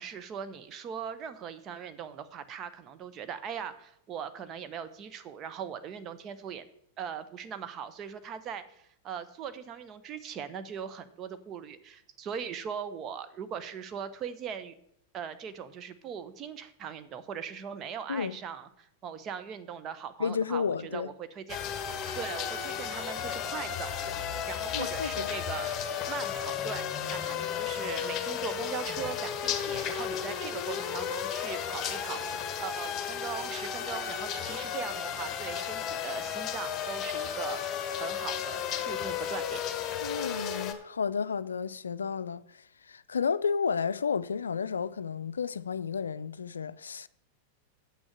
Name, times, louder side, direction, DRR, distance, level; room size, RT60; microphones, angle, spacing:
voice 1, 0.0-6.7 7.0-14.7 15.1-21.6 21.9-25.8 26.1-37.6 38.0-39.6, right 7 dB, 35° right, 1.0 m, -40 dB
voice 2, 20.2-21.1 24.7-25.3 40.0-47.1, left 6 dB, 85° left, 0.4 m, -32 dB
sound 1, 21.5-40.7, left 8 dB, 35° left, 1.4 m, -34 dB
8.0 x 6.3 x 7.5 m
hypercardioid pair, 100°, 0 cm